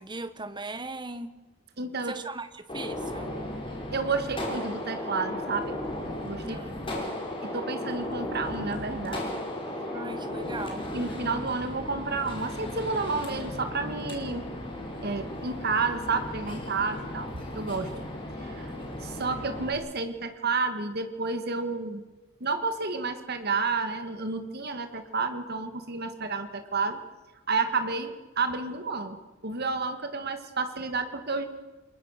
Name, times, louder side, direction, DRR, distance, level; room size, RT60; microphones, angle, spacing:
voice 1, 0.0-1.3 2.0-3.3 6.4-6.8 9.9-10.9, right 2 dB, 20° right, 12 dB, 1.4 m, -38 dB
voice 2, 1.8-2.2 3.9-5.8 6.2-6.6 6.9-7.0 7.4-9.2 10.9-14.5 15.0-17.9 18.4-18.7 19.0-22.0 22.4-27.0 27.5-31.5, right 4 dB, 50° right, 8 dB, 2.0 m, -30 dB
Gunshot gunfire, 2.7-19.7, left 1 dB, 25° left, 5.3 m, -35 dB
29.0 x 22.0 x 6.7 m, 1.2 s
head